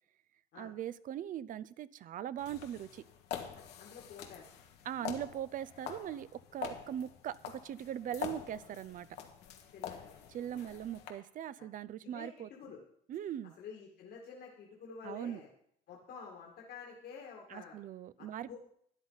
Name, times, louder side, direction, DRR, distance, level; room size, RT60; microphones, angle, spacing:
voice 1, 0.6-3.0 4.9-9.1 10.3-12.5 13.1-13.5 15.0-15.4 17.5-18.6, right 10 dB, 50° right, 17 dB, 0.5 m, -40 dB
sound 1, 2.4-11.1, left 9 dB, 85° left, 1.5 m, -46 dB
voice 2, 3.5-4.5 5.0-5.2 9.7-10.8 11.6-11.7 12.0-12.8 13.6-15.5 15.9-17.8 18.2-18.6, left 6 dB, 70° left, -1 dB, 2.0 m, -50 dB
12.5 x 9.6 x 4.0 m, 0.68 s
cardioid pair, 110°, 17 cm